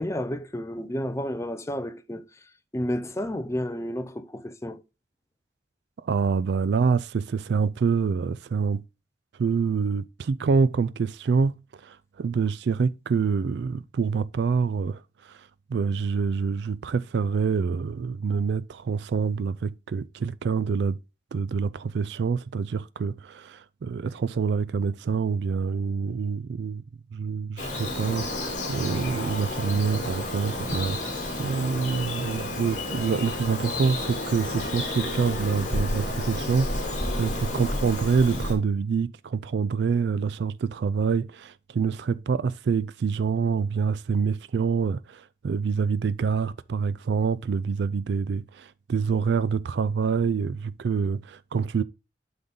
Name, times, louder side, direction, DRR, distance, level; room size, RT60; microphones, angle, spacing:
voice 1, 0.0-2.2 2.7-4.8 37.6-37.9, equal, 15° left, 0.6 m, -31 dB
voice 2, 6.0-8.8 9.4-11.6 11.8-21.0 21.3-26.8 27.1-51.8, right 5 dB, 70° right, 0.3 m, -26 dB
Bird vocalization bird call bird song, 27.6-38.5, left 2 dB, 45° left, 2.4 m, -31 dB
11.5 x 3.9 x 3.7 m
head